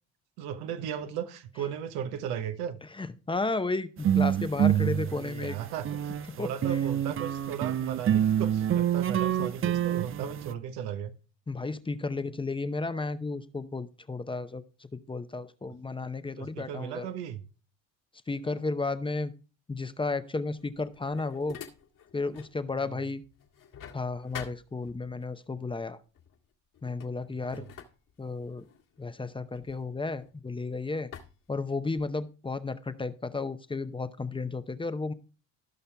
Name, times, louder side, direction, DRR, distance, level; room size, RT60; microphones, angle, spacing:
voice 1, 0.4-2.8 5.1-11.1 15.7-15.8 16.4-17.4 22.8-23.0 27.5-27.7, right 9 dB, 85° right, 1.1 m, -36 dB
voice 2, 3.0-5.6 6.4-6.5 9.4-9.5 11.5-17.1 18.3-19.3 19.7-21.6 22.1-23.2 23.9-26.0 26.8-27.7 28.2-28.6 29.0-31.1 31.5-35.1, left 3 dB, 15° left, 0.7 m, -33 dB
sound 1, 4.0-6.3 6.6-10.5, right 10 dB, 35° right, 0.6 m, -26 dB
sound 2, 20.6-22.6 23.0-25.3 26.1-26.4 26.7-30.6 31.1-32.3, left 8 dB, 55° left, 2.0 m, -48 dB
16.0 x 5.6 x 3.4 m
supercardioid pair, 95°, 37 cm